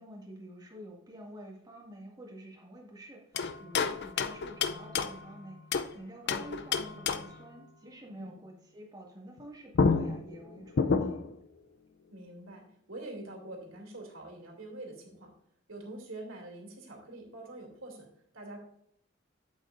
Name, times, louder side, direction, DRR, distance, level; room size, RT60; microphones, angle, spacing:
voice 1, 0.0-11.2, equal, 20° right, -1 dB, 2.0 m, -49 dB
sound 1, 3.3-5.9 6.3-7.4 9.4-9.5 9.7-11.4, left 5 dB, 55° left, 0.5 m, -30 dB
voice 2, 12.1-15.3 15.7-18.1 18.3-18.6, right 2 dB, 85° right, 0 dB, 2.6 m, -45 dB
8.2 x 8.0 x 2.5 m, 0.70 s
head